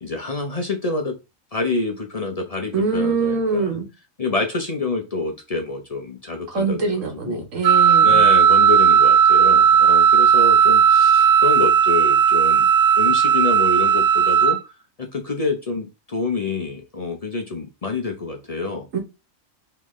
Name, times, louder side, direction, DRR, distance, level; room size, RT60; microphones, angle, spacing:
voice 1, 0.0-1.2 1.5-3.8 4.2-7.4 8.0-12.7 13.0-14.6 15.0-18.8, left 3 dB, 40° left, 0.6 m, -27 dB
voice 2, 2.7-3.9 6.5-8.2 18.9-19.0, right 4 dB, 70° right, 1.4 m, -23 dB
Wind instrument woodwind instrument, 7.6-14.6, right 8 dB, 85° right, 1.1 m, -15 dB
3.8 x 3.3 x 3.1 m
omnidirectional pair, 1.4 m